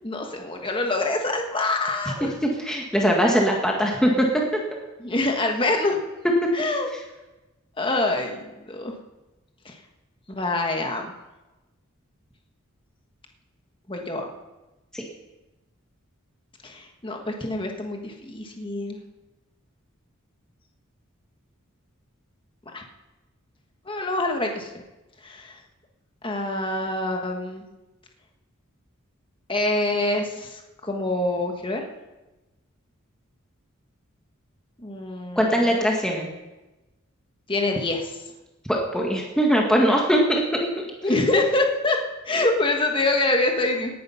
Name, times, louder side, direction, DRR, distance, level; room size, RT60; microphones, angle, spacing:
voice 1, 0.0-2.3 5.0-6.0 6.5-6.9 7.8-8.9 9.6-9.7 10.4-11.1 13.9-14.3 16.6-19.0 22.7-22.8 23.9-24.7 25.2-25.6 26.2-27.6 29.5-31.8 34.8-35.6 37.5-38.2 41.0-42.0 42.2-43.9, left 2 dB, 25° left, 2 dB, 1.4 m, -25 dB
voice 2, 2.2-4.3 14.9-15.0 35.3-36.3 38.7-40.7, equal, 5° left, -1 dB, 1.7 m, -21 dB
18.0 x 10.0 x 5.7 m, 1.1 s
head